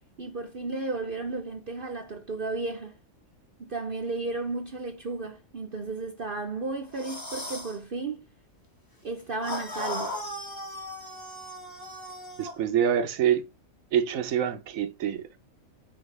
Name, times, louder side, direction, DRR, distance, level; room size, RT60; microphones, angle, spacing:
voice 1, 0.2-2.9 3.6-8.2 9.0-10.1, right 3 dB, 45° right, 0.9 m, -33 dB
sound 1, 6.9-7.8 9.4-12.6, left 1 dB, 15° left, 1.2 m, -37 dB
voice 2, 12.4-13.5 13.9-15.4, right 9 dB, 75° right, 1.2 m, -26 dB
8.7 x 4.5 x 3.3 m
omnidirectional pair, 1.4 m